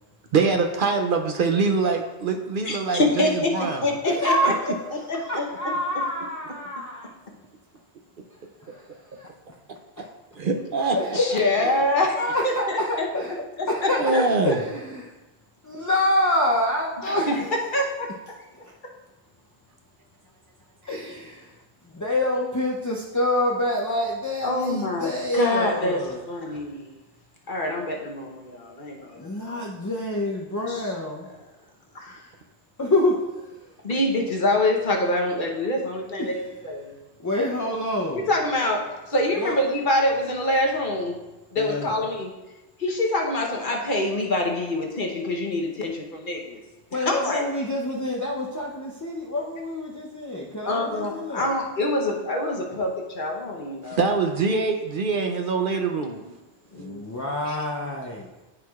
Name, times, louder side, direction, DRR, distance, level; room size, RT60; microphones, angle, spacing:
voice 1, 0.3-3.9 10.4-11.0 14.0-14.6 53.8-56.2, right 4 dB, 60° right, 4 dB, 0.7 m, -24 dB
voice 2, 2.6-4.5 5.1-5.4 11.1-13.1 17.1-17.3 17.7-18.1 24.4-26.9 27.5-29.3 30.7-30.8 31.9-32.2 33.8-36.4 36.6-36.9 38.3-41.2 41.5-42.3 42.8-46.6 47.1-47.4 50.7-54.0 55.7-55.8 56.7-57.0 57.5-57.6, left 1 dB, 50° left, 0 dB, 1.1 m, -25 dB
voice 3, 4.0-7.1 8.6-9.3 10.9-11.3 11.6-11.8 12.2-15.1 15.6-17.7 18.6-18.7 20.8-26.2 29.1-31.3 32.8-33.8 36.2-36.5 37.2-38.3 39.3-39.6 41.6-42.0 46.9-51.5 56.7-58.3, left 1 dB, 25° left, -3 dB, 0.4 m, -27 dB
13.5 x 4.6 x 2.4 m, 1.1 s
omnidirectional pair, 1.1 m